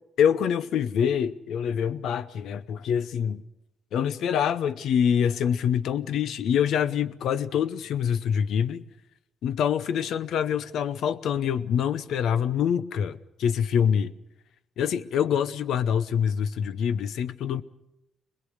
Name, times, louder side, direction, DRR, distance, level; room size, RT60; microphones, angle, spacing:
voice 1, 0.2-3.4 3.9-8.8 9.4-14.1 14.8-17.6, left 8 dB, 70° left, 0.8 m, -25 dB
21.5 x 21.5 x 6.5 m
hypercardioid pair, 50°, 0 cm